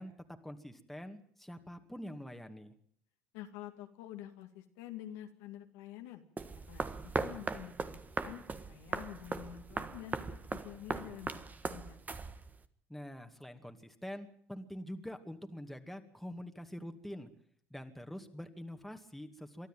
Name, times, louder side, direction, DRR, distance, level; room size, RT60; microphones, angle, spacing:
voice 1, 0.0-2.7 12.9-17.3 17.7-19.7, equal, ahead, 6 dB, 2.3 m, -45 dB
voice 2, 3.3-6.2 6.7-8.4 8.7-12.0, left 12 dB, 85° left, 5 dB, 2.3 m, -48 dB
sound 1, 6.4-12.7, right 4 dB, 25° right, 1.5 m, -39 dB
23.5 x 13.0 x 9.2 m, 0.62 s
supercardioid pair, 80°, 6 cm